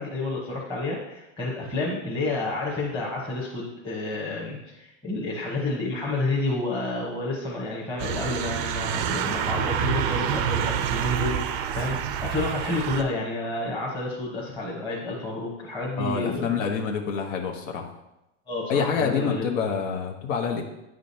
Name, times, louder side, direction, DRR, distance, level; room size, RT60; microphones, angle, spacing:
voice 1, 0.0-16.7 18.5-19.4, left 2 dB, 10° left, -5 dB, 1.1 m, -30 dB
sound 1, 8.0-13.0, right 9 dB, 40° right, 0.5 m, -27 dB
voice 2, 16.0-17.9 18.7-20.6, left 6 dB, 65° left, 2 dB, 1.0 m, -27 dB
9.1 x 5.0 x 2.8 m, 0.91 s
supercardioid pair, 140°, 40 cm